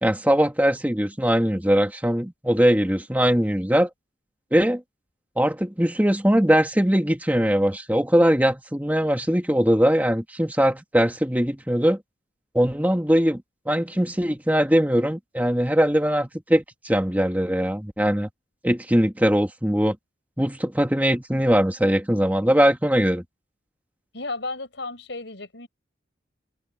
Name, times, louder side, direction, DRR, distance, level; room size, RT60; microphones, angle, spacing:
voice 1, 0.0-3.9 4.5-4.8 5.4-12.0 12.5-18.3 18.6-20.0 20.4-23.2, equal, 10° right, 1.8 m, -21 dB
voice 2, 24.1-25.7, left 3 dB, 70° left, 5.7 m, -33 dB
head